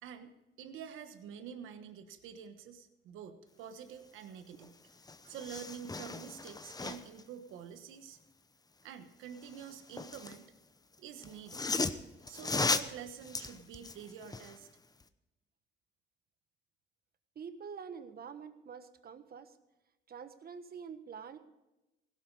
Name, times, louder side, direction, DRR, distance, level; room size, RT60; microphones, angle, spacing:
voice 1, 0.0-4.8 5.2-8.2 8.8-10.5 11.0-11.6 12.3-14.7, right 8 dB, 90° right, 9 dB, 1.3 m, -47 dB
sound 1, 4.6-4.7 5.0-7.2 9.4-10.4 11.2-14.6 15.0-15.1, left 3 dB, 20° left, 0.8 m, -36 dB
voice 2, 17.3-19.6 20.1-21.4, right 6 dB, 50° right, 10 dB, 1.3 m, -46 dB
16.5 x 12.5 x 4.8 m, 0.99 s
cardioid pair, 90°, 20 cm